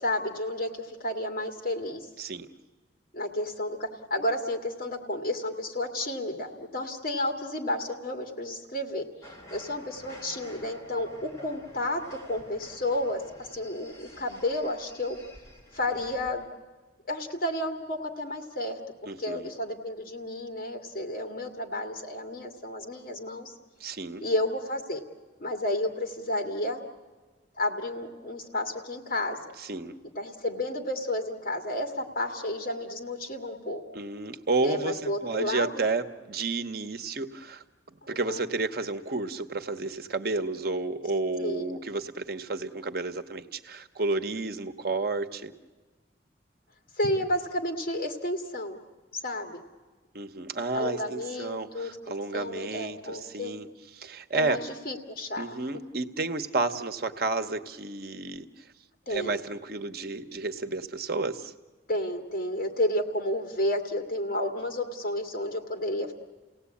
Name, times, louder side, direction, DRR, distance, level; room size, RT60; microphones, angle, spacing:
voice 1, 0.0-2.1 3.1-9.1 9.5-15.2 15.7-16.5 17.1-23.5 24.2-25.0 25.4-26.8 27.6-29.4 30.2-33.8 34.6-35.8 38.0-38.5 41.4-41.8 47.0-48.8 49.1-49.6 50.7-53.6 54.3-55.6 59.1-59.4 61.9-66.1, left 1 dB, 55° left, 4 dB, 2.3 m, -31 dB
voice 2, 2.2-2.5 19.1-19.5 23.8-24.2 29.7-30.0 33.9-37.6 38.1-45.5 50.1-53.7 53.9-54.6 55.4-58.5 59.1-61.5, right 3 dB, 60° right, 9 dB, 1.0 m, -31 dB
sound 1, 9.2-16.5, left 1 dB, 15° left, 3.5 m, -50 dB
29.5 x 17.5 x 8.5 m, 1.3 s
head